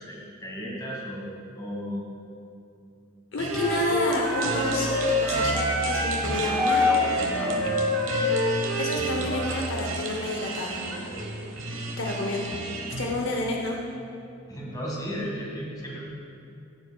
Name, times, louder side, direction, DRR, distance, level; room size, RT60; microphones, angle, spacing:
voice 1, 0.0-2.0 7.3-7.7 14.5-16.0, equal, 20° left, -4 dB, 1.8 m, -35 dB
voice 2, 3.3-6.9 8.8-11.1 12.0-12.5 13.0-13.8, left 2 dB, 70° left, 0 dB, 0.8 m, -29 dB
sound 1, 3.4-13.1, right 2 dB, 85° right, 0.9 m, -32 dB
Wind instrument woodwind instrument, 3.5-9.0, left 1 dB, ahead, 2.0 m, -26 dB
14.0 x 7.4 x 2.3 m, 2.6 s
head